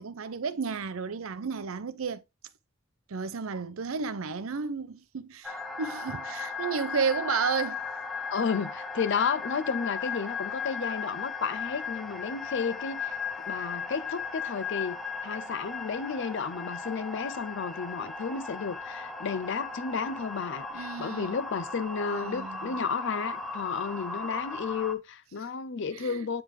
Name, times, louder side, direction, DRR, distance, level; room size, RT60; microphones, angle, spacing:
voice 1, 0.0-2.2 3.1-7.8 20.7-21.4 22.1-22.8 25.9-26.3, right 5 dB, 85° right, 0.6 m, -32 dB
sound 1, 5.4-24.9, left 4 dB, ahead, 0.7 m, -37 dB
voice 2, 8.3-13.1 13.5-15.0 15.2-26.4, left 5 dB, 60° left, 0.5 m, -32 dB
9.0 x 3.4 x 3.3 m
head